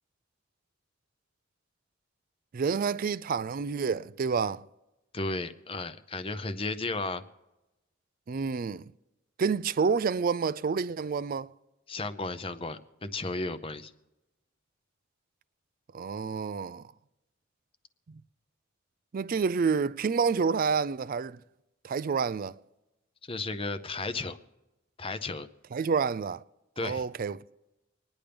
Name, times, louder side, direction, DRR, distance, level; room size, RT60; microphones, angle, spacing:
voice 1, 2.5-4.6 8.3-8.8 9.4-11.5 15.9-16.8 19.1-21.4 21.8-22.6 25.7-26.4 26.8-27.4, right 5 dB, 45° right, 0.4 m, -28 dB
voice 2, 5.1-7.2 11.9-13.9 23.2-24.4 25.0-25.5 26.8-27.1, left 3 dB, 25° left, 0.7 m, -34 dB
25.0 x 10.0 x 3.4 m
head